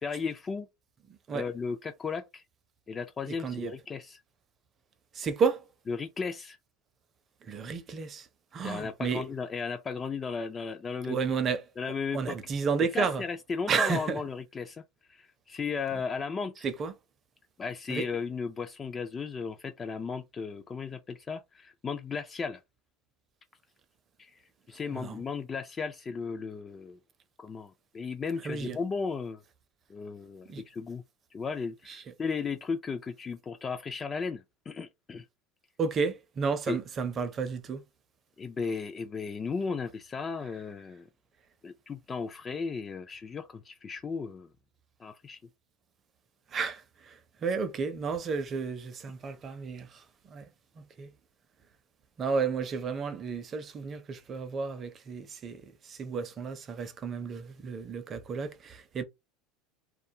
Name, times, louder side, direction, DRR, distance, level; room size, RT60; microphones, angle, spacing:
voice 1, 0.0-0.7 1.3-2.4 2.9-4.2 5.9-6.6 8.6-11.2 11.8-12.4 12.9-14.8 15.1-16.6 17.6-22.6 24.2-24.4 24.7-27.0 27.4-29.4 29.9-31.0 31.3-35.3 36.7-36.8 38.4-41.1 41.6-44.5 45.0-45.4, left 5 dB, 25° left, 0.3 m, -35 dB
voice 2, 3.3-3.7 5.1-5.6 7.5-8.3 8.5-9.2 11.1-11.6 12.1-13.2 13.7-14.2 16.6-16.9 17.9-18.0 24.9-25.2 28.4-28.8 30.5-30.6 31.9-32.0 35.8-37.8 46.5-50.0 50.3-50.4 50.8-51.1 52.2-59.0, right 5 dB, 35° right, 0.5 m, -32 dB
2.2 x 2.2 x 2.8 m
supercardioid pair, 120°, 0 cm